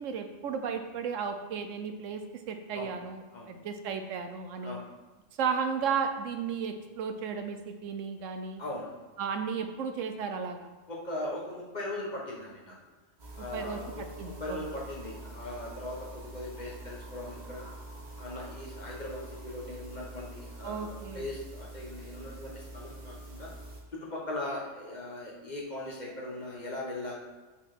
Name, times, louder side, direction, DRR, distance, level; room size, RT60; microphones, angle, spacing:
voice 1, 0.0-2.2 2.5-4.8 5.4-8.6 9.2-10.7 13.5-13.8 14.2-14.6 20.6-21.2, right 6 dB, 85° right, 7 dB, 1.1 m, -34 dB
voice 2, 8.6-9.0 10.9-12.8 13.4-17.7 18.2-23.5 23.9-27.2, left 1 dB, 35° left, -4 dB, 1.6 m, -39 dB
sound 1, 13.2-23.8, right 1 dB, 40° right, 1.5 m, -45 dB
6.0 x 4.5 x 6.0 m, 1.2 s
omnidirectional pair, 1.3 m